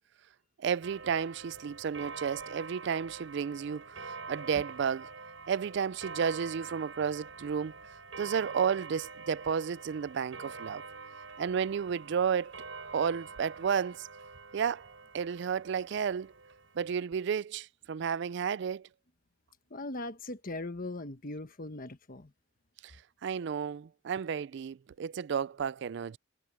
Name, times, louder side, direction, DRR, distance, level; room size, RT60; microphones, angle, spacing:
voice 1, 0.6-5.1 5.5-7.7 8.2-10.8 11.4-12.6 12.9-14.1 14.5-14.9 15.1-16.3 16.8-18.9 22.8-23.0 23.2-26.2, right 7 dB, 65° right, 0.4 m, -32 dB
Clock, 0.8-16.9, right 4 dB, 90° right, 7.2 m, -46 dB
voice 2, 19.7-22.3, left 2 dB, 45° left, 1.3 m, -39 dB
head